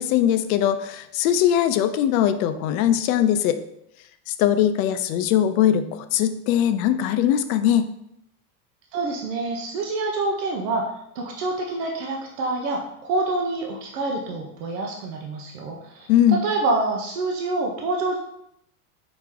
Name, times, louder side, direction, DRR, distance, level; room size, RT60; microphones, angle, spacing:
voice 1, 0.0-3.6 4.3-7.9 16.1-16.4, left 10 dB, 65° left, 10 dB, 0.5 m, -21 dB
voice 2, 8.9-18.2, right 2 dB, 85° right, 0 dB, 0.9 m, -27 dB
4.7 x 3.0 x 3.7 m, 0.78 s
supercardioid pair, 140°, 47 cm